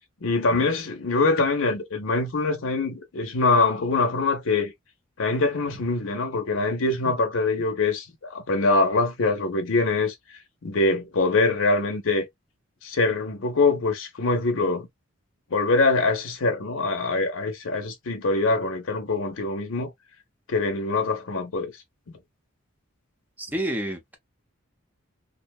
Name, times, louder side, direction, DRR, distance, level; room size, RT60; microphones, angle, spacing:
voice 1, 0.2-4.7 5.2-12.3 12.8-14.9 15.5-19.9 20.5-21.7, left 3 dB, 70° left, 0.7 m, -24 dB
voice 2, 23.4-24.2, right 1 dB, 10° right, 0.6 m, -29 dB
2.6 x 2.2 x 2.3 m
head